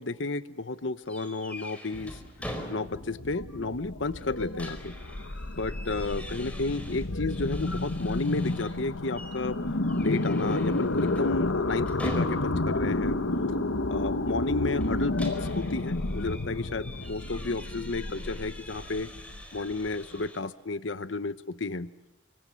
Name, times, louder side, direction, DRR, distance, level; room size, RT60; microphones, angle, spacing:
voice 1, 0.0-2.2 2.7-4.9 5.5-9.6 10.0-13.2 13.9-19.1 19.5-21.9, left 3 dB, 70° left, 13 dB, 1.0 m, -32 dB
sound 1, 1.1-3.2 3.5-3.6 4.2-8.8 9.1-9.4 9.8-12.8 14.8-20.4, equal, 5° left, 4.6 m, -44 dB
sound 2, 2.4-20.2, left 2 dB, 85° left, 1.4 m, -31 dB
29.5 x 25.5 x 7.1 m, 1.0 s
head